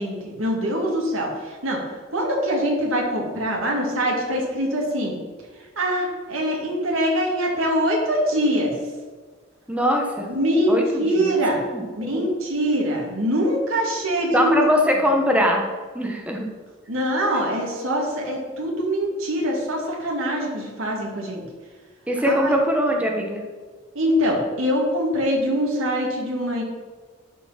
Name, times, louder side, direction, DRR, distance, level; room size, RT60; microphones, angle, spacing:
voice 1, 0.0-1.8 2.1-5.2 5.8-8.7 10.3-11.6 12.0-14.7 16.9-21.4 22.2-22.5 23.9-26.6, equal, 90° right, -1 dB, 2.4 m, -23 dB
voice 2, 9.7-10.3 10.7-11.3 11.7-11.8 12.1-12.2 14.3-15.7 15.9-16.5 22.1-23.4, equal, 5° right, 1 dB, 1.0 m, -21 dB
11.5 x 4.9 x 5.9 m, 1.4 s
head